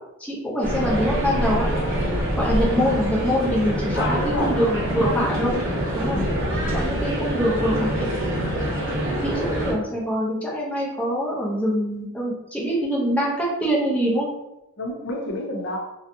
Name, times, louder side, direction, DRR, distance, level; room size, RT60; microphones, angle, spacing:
voice 1, 0.2-1.7 2.4-5.6 5.9-6.2 6.7-8.1 9.2-14.3, equal, 5° left, -6 dB, 0.6 m, -24 dB
sound 1, 0.6-9.7, equal, 40° right, 1.0 m, -25 dB
sound 2, 0.9-6.9, right 3 dB, 65° right, 0.5 m, -40 dB
voice 2, 3.9-5.9 6.1-6.7 14.8-15.8, left 2 dB, 50° left, 1 dB, 0.5 m, -30 dB
2.6 x 2.3 x 2.5 m, 0.90 s
head